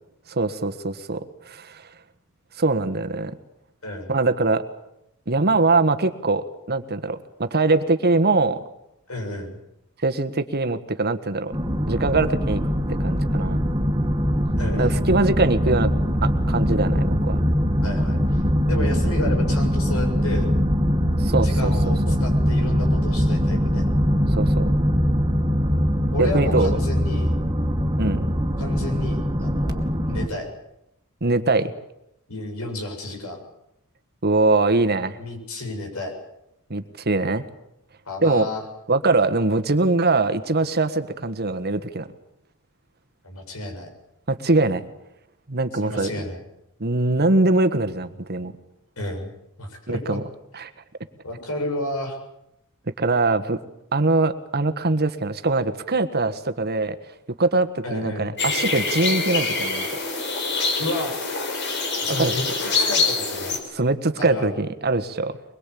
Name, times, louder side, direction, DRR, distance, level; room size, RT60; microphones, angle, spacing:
voice 1, 0.3-1.9 2.6-3.3 4.1-4.6 5.3-8.6 10.0-11.5 11.9-12.6 12.9-13.6 14.8-15.9 16.2-17.4 21.2-22.2 24.4-24.7 26.2-26.8 28.0-28.3 31.2-31.7 34.2-35.2 36.7-37.5 38.2-38.5 38.9-42.1 44.3-44.8 45.5-46.1 46.8-48.5 49.9-50.2 50.5-50.7 53.0-53.6 53.9-57.0 57.4-60.0 62.1-62.3 63.7-65.4, right 3 dB, 45° right, 9 dB, 1.4 m, -22 dB
voice 2, 9.1-9.6 14.6-14.9 17.8-20.5 21.4-23.9 26.1-27.4 28.6-30.5 32.3-33.4 35.1-36.1 38.1-38.6 43.2-43.9 45.8-46.4 49.0-49.3 49.6-50.2 51.2-52.2 57.8-58.3 60.8-61.2 62.0-63.6 64.2-64.6, left 2 dB, 70° left, 4 dB, 7.4 m, -31 dB
sound 1, 11.5-30.3, equal, 20° right, 2.5 m, -22 dB
sound 2, 58.4-63.6, left 3 dB, 55° left, 5.1 m, -25 dB
23.5 x 22.0 x 8.5 m, 0.83 s
head